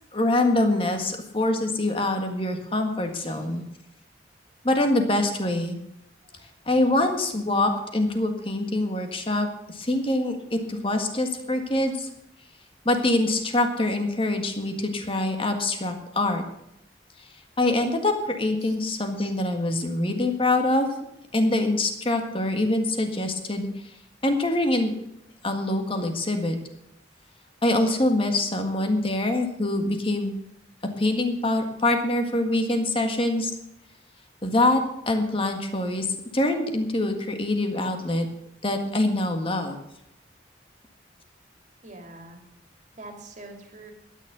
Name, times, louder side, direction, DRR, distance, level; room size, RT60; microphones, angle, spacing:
voice 1, 0.1-3.6 4.6-5.8 6.6-12.1 12.8-16.4 17.6-20.9 21.3-23.7 24.2-24.9 25.4-26.6 27.6-30.4 31.0-33.5 34.4-36.1 36.3-38.3 38.6-39.7, left 1 dB, 30° left, 5 dB, 1.7 m, -24 dB
voice 2, 3.1-3.5 6.2-6.4 18.6-18.8 41.8-42.4 43.0-43.9, right 2 dB, 40° right, 3 dB, 2.6 m, -44 dB
12.5 x 9.8 x 6.8 m, 0.82 s
head